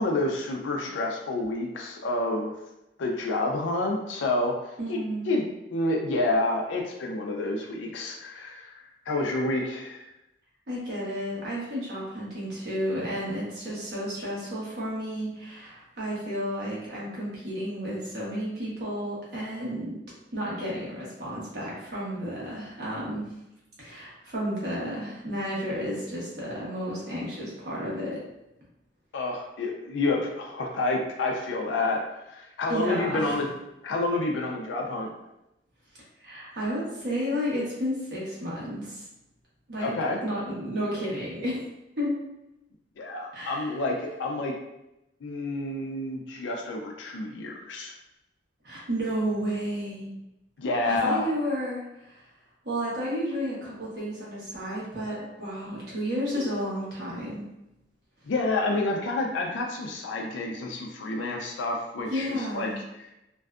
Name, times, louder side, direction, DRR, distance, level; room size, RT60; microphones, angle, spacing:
voice 1, 0.0-2.5 3.0-4.5 4.9-5.0 5.3-5.4 5.7-10.0 29.1-32.0 32.3-33.5 33.8-35.1 39.8-40.2 43.0-44.5 45.2-47.9 50.6-51.3 58.3-62.7 63.0-63.1, left 2 dB, 85° left, 0 dB, 0.4 m, -29 dB
voice 2, 4.8-5.3 10.7-20.0 20.3-23.3 23.8-28.2 32.7-33.4 36.2-39.0 39.7-39.9 40.2-41.6 42.0-42.2 43.3-43.8 48.6-50.2 50.8-52.2 52.6-57.4 62.1-62.8, equal, 60° right, -6 dB, 1.0 m, -32 dB
2.5 x 2.2 x 2.4 m, 0.90 s
head